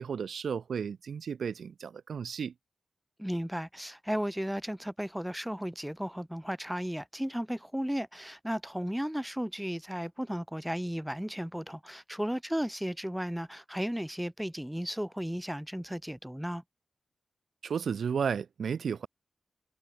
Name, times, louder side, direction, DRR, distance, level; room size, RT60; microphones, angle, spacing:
voice 1, 0.0-2.5 17.6-19.1, right 6 dB, 85° right, 0.6 m, -33 dB
voice 2, 3.2-16.6, equal, 5° right, 1.1 m, -34 dB
wide cardioid pair, 95°, 0 cm